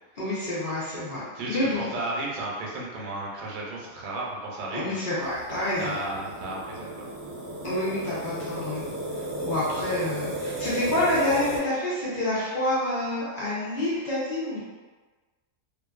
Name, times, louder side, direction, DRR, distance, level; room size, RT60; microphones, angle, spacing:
voice 1, 0.2-1.2 1.5-1.9 4.7-6.0 7.6-8.8 9.2-14.6, left 1 dB, 50° left, -9 dB, 0.6 m, -28 dB
voice 2, 1.3-5.0 5.8-7.1, right 2 dB, 75° right, -3 dB, 1.0 m, -34 dB
sound 1, 5.2-11.6, right 1 dB, 55° right, 0.8 m, -34 dB
2.5 x 2.5 x 2.3 m, 1.3 s
omnidirectional pair, 1.6 m